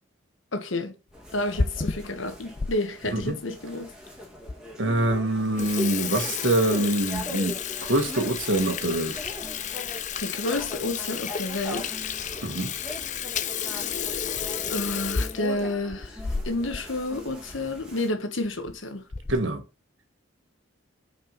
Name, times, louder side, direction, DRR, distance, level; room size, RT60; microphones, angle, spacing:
voice 1, 0.5-0.9 1.3-3.9 10.2-12.0 14.7-19.0, left 2 dB, 80° left, 1.4 m, -30 dB
sound 1, 1.1-18.1, left 1 dB, 5° right, 2.2 m, -40 dB
Water tap faucet / Sink (filling or washing), 1.3-2.7 3.2-3.3 4.0-4.1 4.5-4.6 5.0-5.2 5.4-16.9 17.2-17.3 17.5-17.7 18.4-18.7 19.1-19.5, left 6 dB, 40° left, 0.5 m, -32 dB
voice 2, 4.8-9.2 12.4-12.8 19.3-19.6, right 1 dB, 80° right, 1.8 m, -25 dB
6.1 x 5.0 x 5.6 m
head